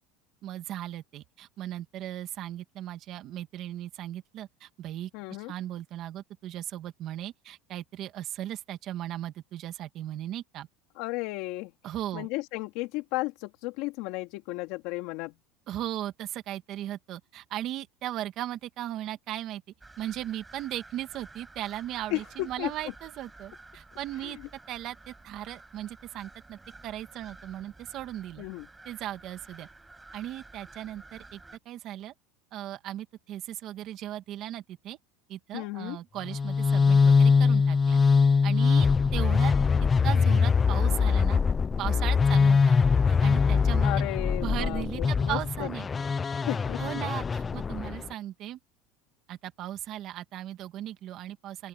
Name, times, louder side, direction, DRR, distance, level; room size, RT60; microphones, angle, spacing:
voice 1, 0.4-5.1 5.5-10.7 11.8-12.3 15.7-19.6 20.0-24.4 24.7-28.4 28.9-29.7 30.1-31.4 31.7-32.1 32.5-35.0 35.3-38.0 38.4-39.5 40.0-41.4 41.8-42.8 43.1-44.0 44.4-45.9 46.8-48.6 49.3-51.7, right 13 dB, 45° right, 2.0 m, -37 dB
voice 2, 5.1-5.5 11.0-11.7 12.1-15.3 22.1-22.7 24.2-24.4 28.4-28.7 35.5-36.0 43.8-45.7 46.5-46.8, left 21 dB, 60° left, 3.2 m, -34 dB
sound 1, 19.8-31.6, right 2 dB, 10° right, 7.6 m, -51 dB
sound 2, 36.2-48.1, left 5 dB, 20° left, 0.6 m, -23 dB
open air
cardioid pair, 155°, 0 cm